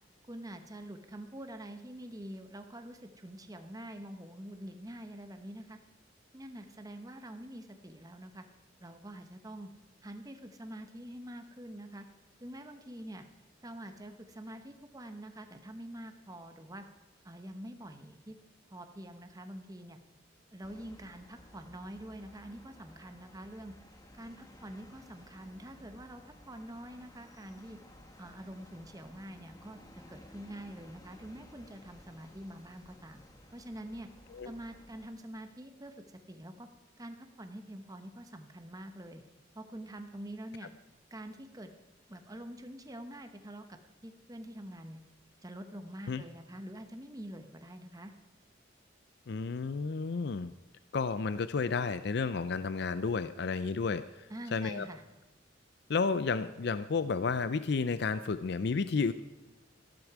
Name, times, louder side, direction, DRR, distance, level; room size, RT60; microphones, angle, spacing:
voice 1, 0.3-5.8 6.3-8.4 8.8-9.7 10.0-12.1 12.4-13.2 13.6-16.9 17.2-18.3 18.7-20.0 20.5-23.7 24.1-27.8 28.2-29.8 30.1-33.2 33.5-34.1 34.4-35.9 36.3-36.7 37.0-39.2 39.5-40.7 41.1-41.7 42.1-45.0 45.4-48.1 54.3-55.0, right 1 dB, 20° right, 6 dB, 1.0 m, -46 dB
sound 1, 20.6-35.1, left 1 dB, 20° left, 1.2 m, -56 dB
voice 2, 49.3-50.5 50.9-54.9 55.9-59.1, left 4 dB, 60° left, 12 dB, 0.5 m, -32 dB
14.0 x 12.5 x 4.7 m, 1.1 s
head